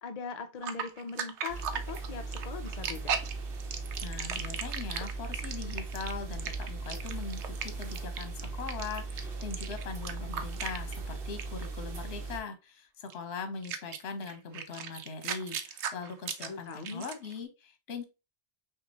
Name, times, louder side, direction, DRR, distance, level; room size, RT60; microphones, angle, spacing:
voice 1, 0.0-3.2 16.4-17.0, left 5 dB, 50° left, 6 dB, 0.5 m, -41 dB
sound 1, 0.6-11.1 11.4-11.7 13.1-13.2 13.6-17.3, right 7 dB, 85° right, 1.0 m, -37 dB
sound 2, 1.5-12.4, right 3 dB, 60° right, 1.0 m, -38 dB
voice 2, 4.0-18.0, left 5 dB, 65° left, 8 dB, 1.1 m, -41 dB
5.7 x 2.5 x 2.8 m, 0.27 s
omnidirectional pair, 1.2 m